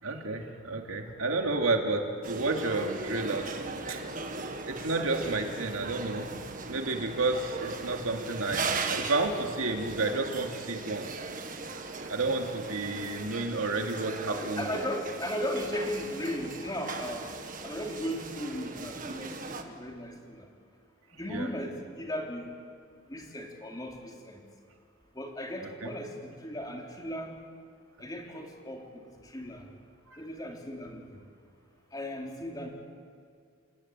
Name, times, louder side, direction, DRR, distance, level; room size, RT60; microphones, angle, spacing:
voice 1, 0.0-3.6 3.9-4.0 4.7-6.3 6.7-8.6 8.9-11.2 12.0-14.8 21.3-21.5 25.6-25.9 30.1-30.2, right 3 dB, 85° right, 3 dB, 2.7 m, -31 dB
sound 1, 2.2-19.6, right 3 dB, 40° right, 1.7 m, -38 dB
voice 2, 14.3-17.3 17.6-20.5 21.1-22.5 23.1-24.4 25.1-27.3 28.0-29.6 30.2-31.1 31.9-32.7, equal, 20° left, 1 dB, 3.3 m, -36 dB
30.0 x 17.0 x 9.1 m, 2.3 s
head